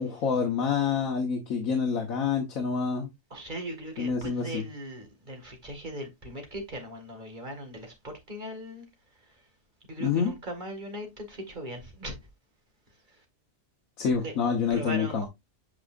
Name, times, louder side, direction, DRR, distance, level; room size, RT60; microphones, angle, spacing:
voice 1, 0.0-3.1 4.0-4.6 10.0-10.3 14.0-15.3, left 6 dB, 90° left, 1.6 m, -27 dB
voice 2, 3.3-8.9 9.9-12.1 14.2-14.3 14.7-15.3, right 1 dB, 35° right, 2.1 m, -39 dB
8.7 x 5.0 x 2.5 m
omnidirectional pair, 1.4 m